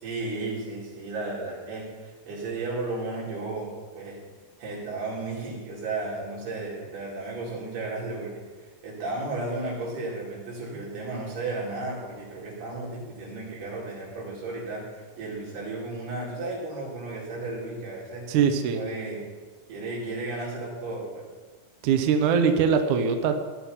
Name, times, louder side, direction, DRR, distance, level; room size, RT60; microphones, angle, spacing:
voice 1, 0.0-4.2 4.6-8.5 8.8-18.3 18.7-19.3 19.7-21.3, right 2 dB, 90° right, -5 dB, 6.4 m, -34 dB
voice 2, 18.3-18.8 21.8-23.4, right 6 dB, 65° right, 6 dB, 2.2 m, -22 dB
18.5 x 11.0 x 5.6 m, 1.4 s
omnidirectional pair, 4.4 m